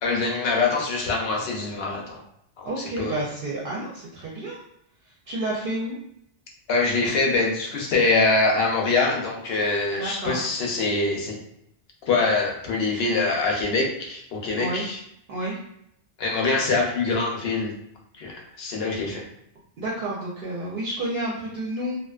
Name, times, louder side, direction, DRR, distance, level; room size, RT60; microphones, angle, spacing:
voice 1, 0.0-2.2 2.6-3.2 6.7-11.4 12.0-15.0 16.2-17.7 18.2-19.2, left 3 dB, 65° left, 0 dB, 0.8 m, -24 dB
voice 2, 2.7-4.6 5.0-6.0 9.9-10.4 14.6-14.8 15.3-15.6 19.8-22.0, right 1 dB, 60° right, -5 dB, 0.7 m, -30 dB
2.4 x 2.2 x 2.3 m, 0.74 s
omnidirectional pair, 1.2 m